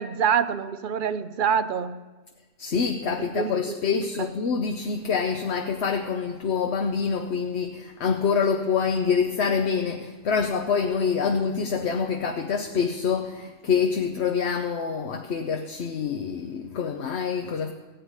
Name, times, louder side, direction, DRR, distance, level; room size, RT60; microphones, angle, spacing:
voice 1, 0.0-2.0 3.2-3.8 4.2-4.3, right 7 dB, 55° right, 13 dB, 0.7 m, -26 dB
voice 2, 2.6-17.7, left 6 dB, 70° left, 4 dB, 1.1 m, -26 dB
15.5 x 5.7 x 9.5 m, 1.2 s
omnidirectional pair, 1.2 m